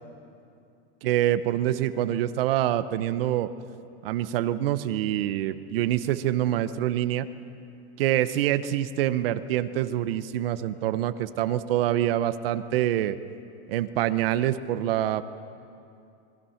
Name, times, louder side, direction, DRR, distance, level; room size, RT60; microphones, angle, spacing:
voice 1, 1.0-3.5 4.0-7.3 8.0-13.2 13.7-15.2, right 12 dB, 60° right, 12 dB, 0.9 m, -25 dB
27.0 x 21.0 x 5.8 m, 2.6 s
supercardioid pair, 180°, 33 cm